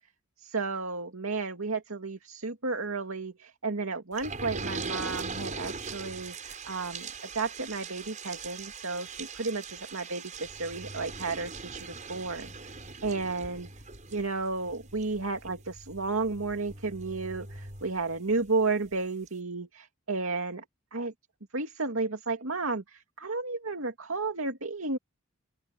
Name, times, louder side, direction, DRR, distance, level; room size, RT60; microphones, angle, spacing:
voice 1, 0.4-12.7 13.0-13.7 14.1-20.6 20.9-21.1 21.5-25.0, right 3 dB, 85° right, 2.4 m, -33 dB
sound 1, 4.2-18.5 18.9-19.0 19.3-19.4, right 4 dB, 35° right, 6.6 m, -41 dB
open air
head